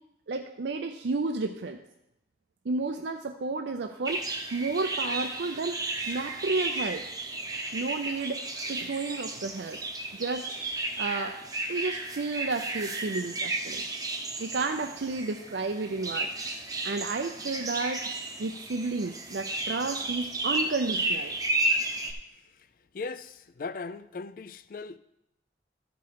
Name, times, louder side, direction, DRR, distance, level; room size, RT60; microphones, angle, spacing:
voice 1, 0.3-1.8 2.7-4.2 4.5-5.8 6.1-7.1 7.7-8.4 8.7-9.8 10.2-10.6 11.0-11.4 11.7-13.8 14.4-16.3 16.8-18.0 18.4-21.4, right 3 dB, 75° right, 0.5 m, -31 dB
sound 1, 4.0-22.1, right 2 dB, 20° right, 0.8 m, -33 dB
voice 2, 22.3-22.7 22.9-25.0, left 4 dB, 50° left, 0.4 m, -39 dB
13.0 x 5.2 x 4.7 m
head